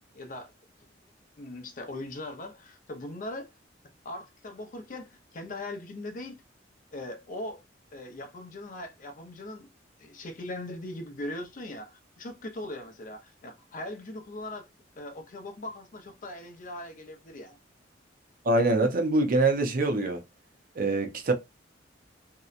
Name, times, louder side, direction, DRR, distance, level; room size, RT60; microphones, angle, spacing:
voice 1, 0.1-0.5 1.4-3.5 4.0-6.4 6.9-7.6 7.9-9.7 10.0-14.7 15.0-17.6, left 1 dB, 45° left, 0.5 m, -40 dB
voice 2, 18.4-20.2 20.8-21.3, right 2 dB, 50° right, 0.5 m, -24 dB
2.7 x 2.1 x 2.4 m
head